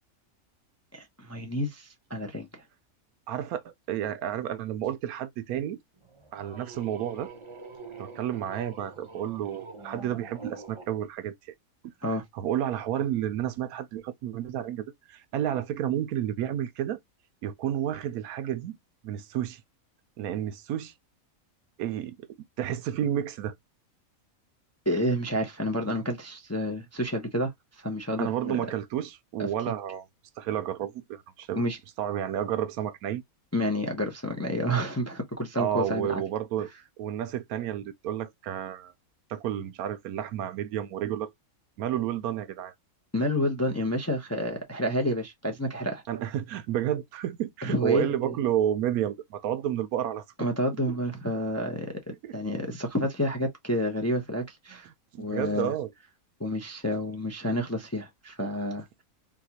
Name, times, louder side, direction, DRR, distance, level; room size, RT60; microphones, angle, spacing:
voice 1, 0.9-2.6 12.0-12.2 24.9-27.5 27.8-28.6 29.4-29.5 31.5-31.8 33.5-36.2 43.1-46.0 47.6-48.3 50.4-52.0 52.3-54.9 55.2-55.7 56.4-59.0, equal, 20° left, 0.4 m, -29 dB
voice 2, 3.3-5.8 6.3-7.3 8.0-11.4 11.8-11.9 12.3-17.0 17.4-18.8 19.0-19.6 20.2-20.9 21.8-22.2 22.6-23.5 28.2-30.0 30.4-31.6 32.0-33.2 35.6-36.7 37.0-38.9 39.3-41.3 41.8-42.7 46.1-50.2 50.9-51.0 52.2-52.3 54.7-55.9, right 11 dB, 85° right, 1.1 m, -31 dB
sound 1, 6.0-10.9, right 3 dB, 45° right, 0.4 m, -45 dB
4.0 x 2.3 x 2.7 m
omnidirectional pair, 1.5 m